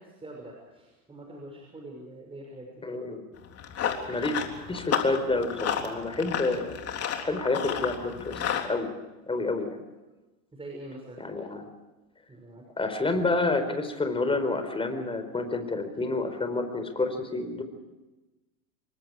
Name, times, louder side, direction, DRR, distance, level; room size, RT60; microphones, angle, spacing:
voice 1, 0.0-2.8 5.9-6.2 9.3-9.5 10.5-11.2 12.3-12.7, right 1 dB, 10° right, 0 dB, 6.2 m, -44 dB
voice 2, 2.8-3.2 4.1-4.4 4.7-6.8 7.2-8.4 8.7-8.9 9.3-9.8 11.2-11.7 12.8-17.6, left 3 dB, 10° left, 8 dB, 4.5 m, -29 dB
Run, 3.4-8.7, left 8 dB, 30° left, 3.6 m, -32 dB
27.0 x 24.0 x 5.0 m, 1.1 s
hypercardioid pair, 120°, 45 cm